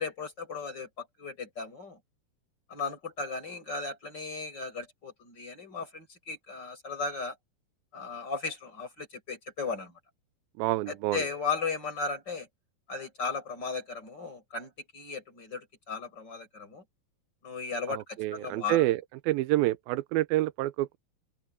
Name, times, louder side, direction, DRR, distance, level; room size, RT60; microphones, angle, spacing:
voice 1, 0.0-2.0 2.7-7.4 7.9-9.9 10.9-12.5 12.9-16.8 17.4-18.8, left 4 dB, 30° left, 6.9 m, -36 dB
voice 2, 10.6-11.2 17.9-21.0, right 17 dB, 85° right, 2.5 m, -28 dB
open air
omnidirectional pair, 4.1 m